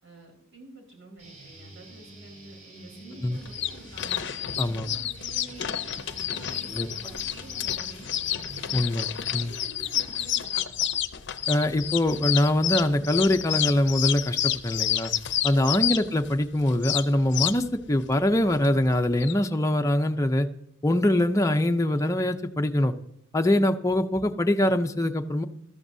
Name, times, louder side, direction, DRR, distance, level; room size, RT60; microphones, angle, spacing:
voice 1, 0.0-5.9 6.3-8.7 9.1-10.9 15.8-16.1, right 2 dB, 70° right, 1 dB, 4.6 m, -49 dB
Guitar, 1.2-9.2, right 1 dB, 40° right, 5.2 m, -47 dB
sound 1, 3.3-19.3, left 11 dB, 60° left, 0.6 m, -30 dB
voice 2, 8.7-9.1 9.3-9.5 11.5-15.1 15.4-20.5 20.8-22.9 23.3-25.4, left 1 dB, 15° left, 5 dB, 0.6 m, -23 dB
14.5 x 13.0 x 2.7 m, 0.75 s
head